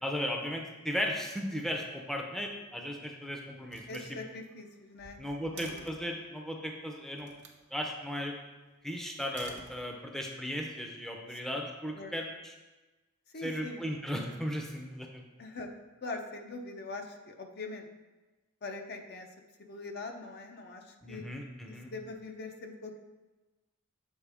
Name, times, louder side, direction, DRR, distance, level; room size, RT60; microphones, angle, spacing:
voice 1, 0.0-4.0 5.2-7.3 7.7-8.3 8.8-12.5 13.4-15.2 21.0-21.9, equal, ahead, 1 dB, 0.6 m, -36 dB
Slam, 2.6-3.2 3.7-6.1 7.2-7.6 9.1-10.3, right 4 dB, 60° right, 0.8 m, -51 dB
voice 2, 3.9-5.2 5.5-5.8 11.9-12.1 13.3-13.8 15.4-15.7 16.0-17.9 18.6-19.3 19.6-21.2 21.6-23.0, left 3 dB, 55° left, 4 dB, 0.6 m, -42 dB
7.2 x 4.4 x 3.4 m, 1.1 s
head